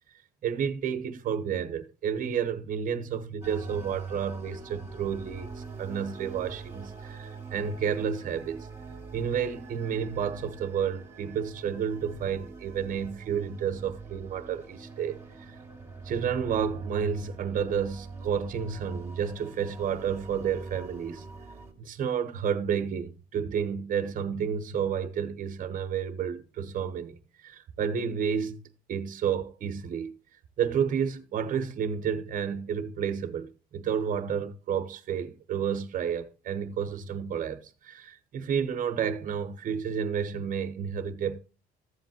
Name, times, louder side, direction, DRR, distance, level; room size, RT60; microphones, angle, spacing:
voice 1, 0.4-8.7 9.1-15.6 16.0-21.2 21.8-28.6 28.9-30.1 30.6-41.4, right 7 dB, 50° right, 1.0 m, -31 dB
sound 1, 3.4-21.7, right 4 dB, 15° right, 2.3 m, -43 dB
14.5 x 7.5 x 2.9 m
cardioid pair, 110°, 17 cm